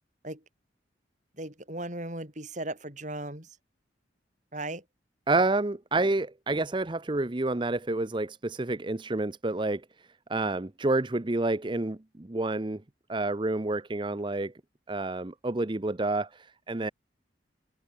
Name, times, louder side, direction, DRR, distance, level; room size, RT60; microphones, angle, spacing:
voice 1, 1.4-3.5 4.5-4.8, right 1 dB, 40° right, 7.3 m, -37 dB
voice 2, 5.3-9.8 10.3-12.8 13.1-14.5 14.9-16.9, right 2 dB, 25° right, 0.7 m, -29 dB
head